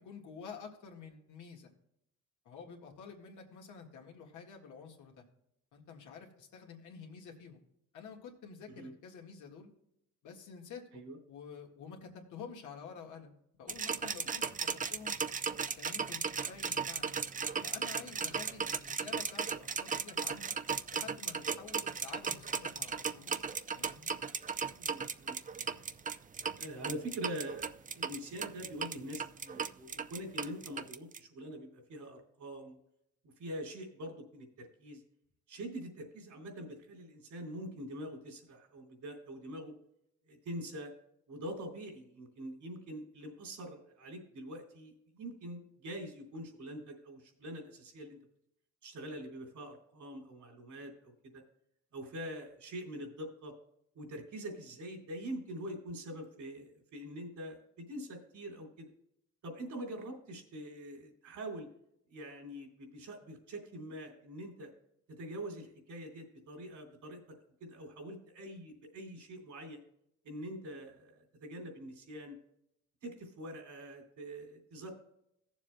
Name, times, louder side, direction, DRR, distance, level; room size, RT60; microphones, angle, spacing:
voice 1, 0.0-1.7 2.5-5.3 5.7-7.6 7.9-9.7 10.2-15.2 15.8-17.2 17.6-20.5 20.9-23.3 23.7-24.1, left 6 dB, 80° left, 1 dB, 1.8 m, -50 dB
sound 1, 13.7-31.2, right 6 dB, 25° right, 0.5 m, -36 dB
voice 2, 24.8-25.4 25.6-25.9 26.6-32.7 33.4-35.0 35.5-39.7 40.3-40.9 41.3-48.2 48.8-51.4 51.9-53.5 53.9-58.9 59.4-61.7 62.1-64.7 65.1-69.8 70.2-72.4 73.0-75.0, right 1 dB, 75° right, 2 dB, 3.1 m, -44 dB
17.0 x 7.3 x 2.3 m, 0.76 s
cardioid pair, 90°, 30 cm